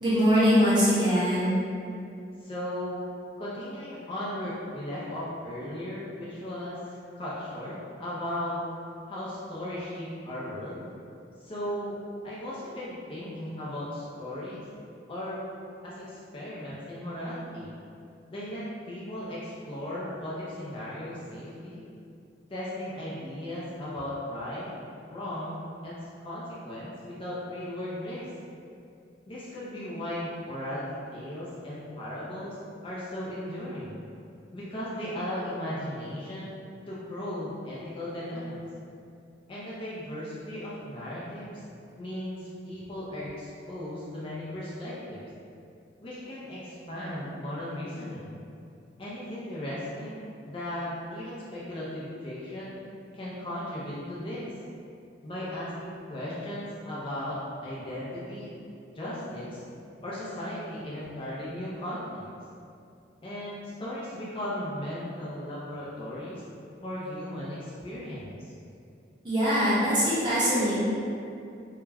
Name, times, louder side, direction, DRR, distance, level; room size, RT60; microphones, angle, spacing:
voice 1, 0.0-1.5 69.2-70.8, equal, 25° right, -11 dB, 0.9 m, -22 dB
voice 2, 2.4-3.1 3.4-6.8 7.1-7.7 8.0-8.6 9.1-10.8 11.4-12.0 12.2-14.7 15.1-15.4 15.8-17.7 18.3-21.8 22.5-24.7 25.1-28.3 29.3-32.6 32.8-34.0 34.5-36.5 36.9-38.6 39.5-41.6 42.0-45.2 46.0-48.3 49.0-52.7 53.1-54.5 55.2-58.5 58.9-59.6 60.0-62.3 63.2-66.4 66.8-68.5, left 1 dB, 30° left, -8 dB, 0.4 m, -36 dB
2.2 x 2.1 x 3.3 m, 2.5 s
head